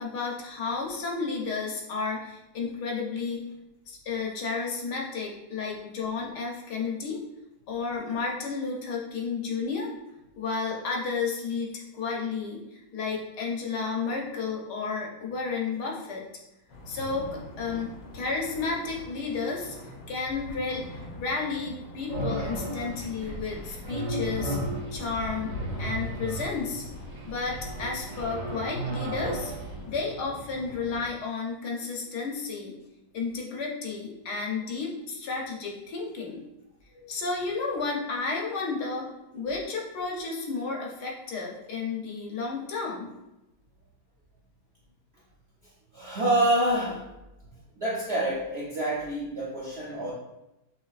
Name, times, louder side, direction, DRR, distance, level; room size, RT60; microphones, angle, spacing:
voice 1, 0.0-3.5 3.9-7.2 7.7-9.9 10.4-16.2 16.9-19.8 20.1-24.6 24.9-26.8 27.3-29.5 29.9-32.7 33.1-36.4 37.1-43.1, left 4 dB, 65° left, -1 dB, 1.2 m, -32 dB
sound 1, 16.7-31.1, left 1 dB, 85° left, 1.5 m, -43 dB
sound 2, 22.1-29.8, right 1 dB, 30° right, 0.7 m, -35 dB
voice 2, 45.9-47.0 47.8-50.1, right 1 dB, 70° right, -6 dB, 0.6 m, -27 dB
6.4 x 2.9 x 2.4 m, 0.94 s
omnidirectional pair, 2.0 m